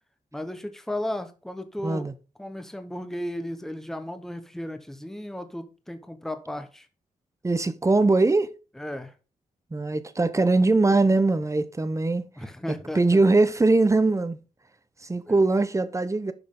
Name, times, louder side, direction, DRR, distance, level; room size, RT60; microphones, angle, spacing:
voice 1, 0.3-2.1 2.4-6.9 8.8-9.1 12.4-13.2 15.3-15.4, left 1 dB, 5° left, 1.0 m, -35 dB
voice 2, 1.8-2.1 7.4-8.5 9.7-12.3 12.7-14.4 15.0-16.3, right 3 dB, 20° right, 0.8 m, -21 dB
10.5 x 5.9 x 3.8 m
wide cardioid pair, 110°, 15 cm